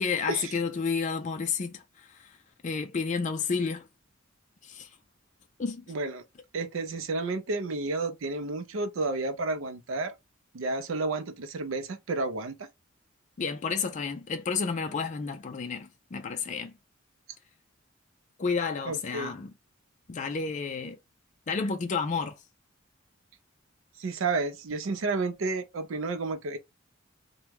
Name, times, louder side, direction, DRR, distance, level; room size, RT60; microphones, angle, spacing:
voice 1, 0.0-1.8 2.6-3.8 4.7-4.9 5.6-5.8 13.4-16.7 18.4-19.5 20.1-21.0 21.5-22.3, left 5 dB, 40° left, 0.4 m, -30 dB
voice 2, 5.9-6.2 6.5-10.1 10.5-12.7 18.9-19.3 24.0-26.6, right 3 dB, 80° right, 0.5 m, -31 dB
2.9 x 2.2 x 3.4 m
head